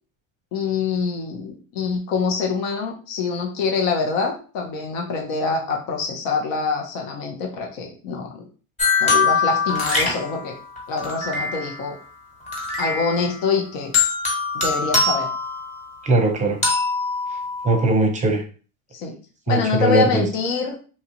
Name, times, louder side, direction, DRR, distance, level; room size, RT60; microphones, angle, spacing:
voice 1, 0.5-8.5 9.0-10.5 10.9-12.0 12.8-13.9 14.5-15.3 18.9-19.1 19.5-20.8, left 4 dB, 75° left, 1 dB, 0.9 m, -25 dB
sound 1, 8.8-11.9 12.5-13.5 13.9-16.1 16.6-17.9, left 4 dB, 15° left, 1.3 m, -23 dB
voice 2, 16.0-16.6 17.6-18.4 19.5-20.2, right 2 dB, 20° right, 4 dB, 0.6 m, -19 dB
2.9 x 2.4 x 2.9 m, 0.38 s
supercardioid pair, 110°, 40 cm